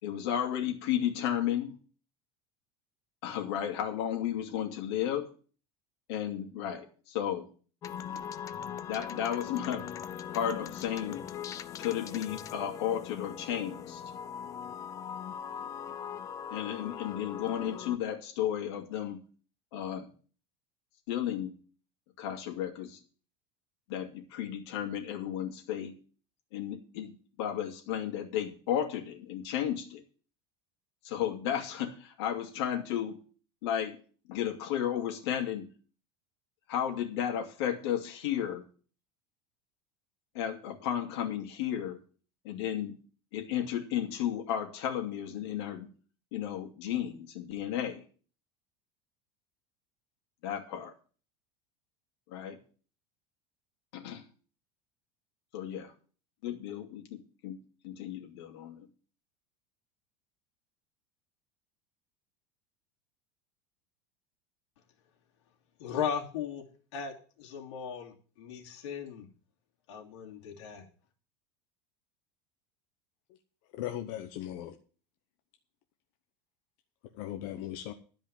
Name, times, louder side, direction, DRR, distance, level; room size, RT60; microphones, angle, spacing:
voice 1, 0.0-1.7 3.2-5.3 6.1-7.4 8.9-9.9 10.3-11.2 11.8-14.0 16.5-19.2 19.7-20.1 21.1-21.5 22.2-23.0 23.9-25.9 26.5-27.1 27.4-30.0 31.0-33.2 33.6-34.0 34.3-35.7 36.7-38.6 40.3-42.0 42.4-42.9 43.3-45.9 46.3-48.0 50.4-50.9 52.3-52.6 53.9-54.2 55.5-55.9 56.4-57.6 57.8-58.9, left 10 dB, 70° left, 2.7 m, -33 dB
sound 1, 7.8-18.0, left 8 dB, 20° left, 0.5 m, -41 dB
voice 2, 65.8-66.6 66.9-69.3 69.9-70.8, left 7 dB, 85° left, 2.9 m, -37 dB
voice 3, 73.7-74.7 77.1-77.9, left 12 dB, 50° left, 1.0 m, -38 dB
12.5 x 5.4 x 8.9 m
supercardioid pair, 170°, 15 cm